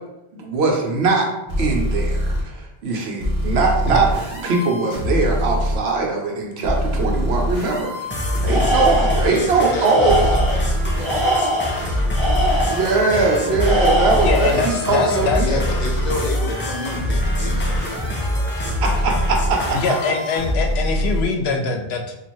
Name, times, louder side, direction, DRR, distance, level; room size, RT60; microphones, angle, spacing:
voice 1, 0.3-1.3 1.6-7.9 8.4-10.2 12.7-15.5 18.8-19.7, right 3 dB, 85° right, 1 dB, 1.0 m, -21 dB
sound 1, 1.5-2.4 3.2-5.8 6.6-9.3 10.1-21.2, equal, 55° right, 0.9 m, -24 dB
sound 2, 8.1-20.1, equal, 20° left, 0.4 m, -27 dB
Tools, 8.5-9.4 9.8-10.6 11.0-12.9 13.6-14.6, equal, 30° right, 0.8 m, -22 dB
voice 2, 9.3-13.2 15.4-18.8, left 2 dB, 50° left, 0 dB, 0.7 m, -32 dB
voice 3, 14.2-15.9 19.7-22.1, left 4 dB, 80° left, 3 dB, 0.8 m, -23 dB
3.0 x 2.5 x 4.3 m, 0.91 s
omnidirectional pair, 1.0 m